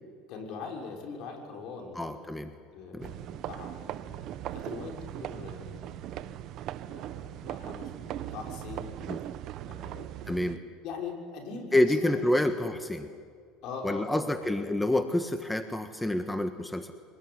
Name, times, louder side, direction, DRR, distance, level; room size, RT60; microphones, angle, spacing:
voice 1, 0.3-2.3 2.7-4.1 4.5-6.0 6.8-8.9 9.7-10.1 10.4-12.5 13.6-14.7, left 4 dB, 65° left, 2 dB, 6.3 m, -42 dB
voice 2, 1.9-2.5 2.9-3.1 9.1-9.2 10.3-10.6 11.7-13.1 13.8-16.9, left 1 dB, 5° left, 8 dB, 1.5 m, -28 dB
sound 1, 3.0-10.6, right 12 dB, 55° right, 1.0 m, -39 dB
24.5 x 20.5 x 9.9 m, 2.1 s
supercardioid pair, 100°, 0 cm